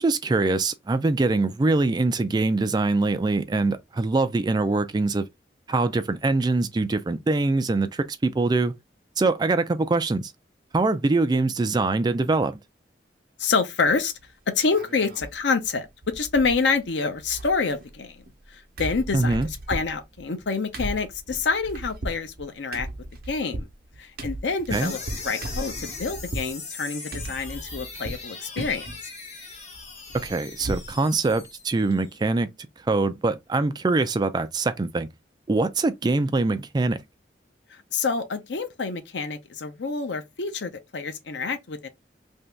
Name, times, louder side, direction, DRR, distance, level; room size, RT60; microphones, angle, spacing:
voice 1, 0.0-5.2 5.7-8.7 9.2-10.3 10.7-12.6 19.1-19.5 24.7-24.9 30.2-32.5 32.9-35.1 35.5-37.0, right 3 dB, 25° right, 0.3 m, -23 dB
voice 2, 13.4-14.1 14.6-15.9 16.1-18.2 18.5-22.9 23.3-23.7 24.0-25.0 25.2-28.9 37.7-41.9, left 4 dB, 85° left, 0.7 m, -27 dB
sound 1, 13.8-14.2 14.6-15.4 15.7-15.8 16.0-16.9 17.1-18.5 18.8-26.5 27.1-28.3 28.6-29.0 29.4-31.0 31.3-31.4 31.7-31.9, right 1 dB, 60° right, 0.8 m, -36 dB
sound 2, 24.7-32.2, left 4 dB, 40° left, 1.0 m, -40 dB
2.9 x 2.7 x 3.3 m
head